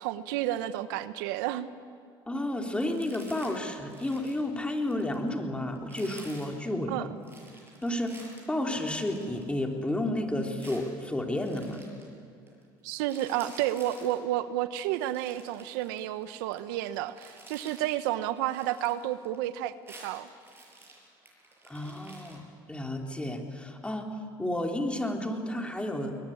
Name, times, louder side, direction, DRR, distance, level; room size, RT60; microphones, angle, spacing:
voice 1, 0.0-1.7 6.9-7.1 12.8-19.7 20.0-20.3, right 13 dB, 85° right, 13 dB, 0.9 m, -31 dB
voice 2, 2.3-7.1 7.8-8.1 8.5-11.8 21.7-22.4 22.7-26.2, left 1 dB, 10° left, 3 dB, 3.2 m, -31 dB
sound 1, 2.7-3.6 3.9-5.3 5.8-6.6 7.2-9.9 10.6-12.1 12.5-12.6 12.9-14.2 14.9-16.6 16.9-18.1 18.4-19.5 19.7-22.4, right 2 dB, 20° right, 7.8 m, -51 dB
21.0 x 20.5 x 9.9 m, 2.3 s
supercardioid pair, 90°, 11 cm